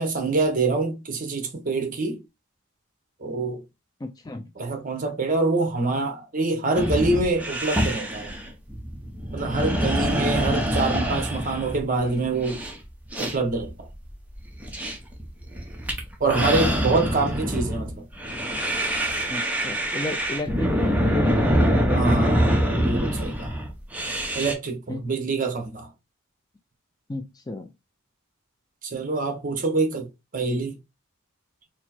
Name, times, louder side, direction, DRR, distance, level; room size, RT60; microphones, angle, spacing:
voice 1, 0.0-2.2 3.2-3.6 4.6-8.3 9.3-12.6 13.2-13.9 16.2-18.1 21.9-22.5 22.8-23.6 24.3-25.9 28.8-30.7, right 3 dB, 40° right, 1.0 m, -25 dB
voice 2, 4.0-4.4 10.5-10.6 19.3-21.4 21.7-22.0 22.3-22.4 24.9-25.1 27.1-27.7, left 2 dB, 20° left, 0.4 m, -33 dB
sound 1, 6.7-24.5, equal, 5° right, 0.7 m, -25 dB
4.3 x 2.1 x 4.3 m
head